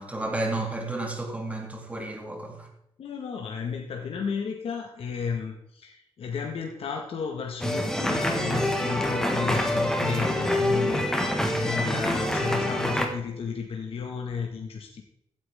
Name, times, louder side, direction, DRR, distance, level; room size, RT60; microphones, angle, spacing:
voice 1, 0.0-2.7, right 2 dB, 15° right, 1 dB, 2.5 m, -32 dB
voice 2, 3.0-15.0, left 6 dB, 65° left, 1 dB, 1.6 m, -33 dB
sound 1, 7.6-13.1, left 1 dB, 5° left, 1.6 m, -26 dB
15.5 x 9.4 x 3.6 m, 0.75 s
wide cardioid pair, 150°, 10 cm